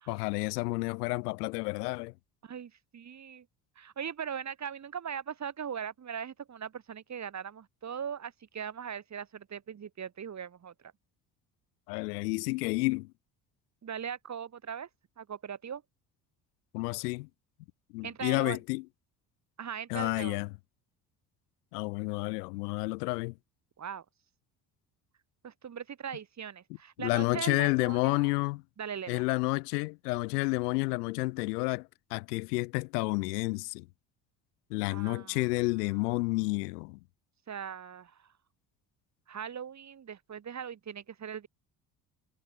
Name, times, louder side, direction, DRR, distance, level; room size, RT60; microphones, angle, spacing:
voice 1, 0.1-2.1 11.9-13.1 16.7-17.3 17.9-18.8 19.9-20.5 21.7-23.3 27.0-28.6 29.1-33.9 34.7-37.0, left 25 dB, 75° left, 1.5 m, -30 dB
voice 2, 2.4-3.5 3.8-10.9 13.8-14.9 15.2-15.8 18.0-18.6 19.6-20.4 23.8-24.1 25.4-28.3 28.8-29.2 34.9-35.5 37.5-38.3 39.3-41.5, right 8 dB, 35° right, 1.9 m, -40 dB
hypercardioid pair, 55°, 48 cm